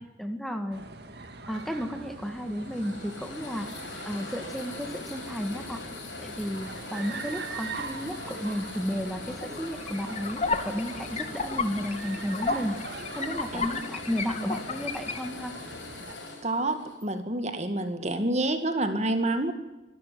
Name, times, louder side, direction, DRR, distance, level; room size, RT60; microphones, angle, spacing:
voice 1, 0.2-0.9 1.5-3.7 4.1-5.8 6.2-12.8 13.1-15.5, equal, ahead, 6 dB, 2.2 m, -33 dB
sound 1, 0.7-16.1, right 3 dB, 60° right, 2.2 m, -42 dB
sound 2, 1.5-17.1, left 3 dB, 75° left, 7.0 m, -42 dB
sound 3, 9.3-15.3, left 4 dB, 35° left, 2.0 m, -33 dB
voice 2, 16.4-19.5, right 2 dB, 35° right, 8 dB, 2.1 m, -28 dB
25.5 x 13.0 x 9.4 m, 1.0 s
head